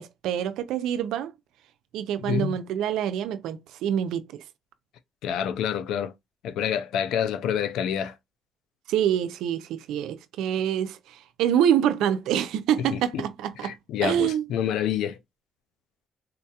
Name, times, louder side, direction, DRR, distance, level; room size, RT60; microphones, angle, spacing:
voice 1, 0.0-1.3 1.9-4.4 8.9-13.7 14.0-14.5, right 10 dB, 90° right, 0.4 m, -26 dB
voice 2, 2.3-2.6 5.2-6.1 6.4-8.1 12.9-13.2 13.6-15.2, left 9 dB, 85° left, 0.3 m, -27 dB
3.8 x 2.2 x 2.8 m
cardioid pair, 90°, 0 cm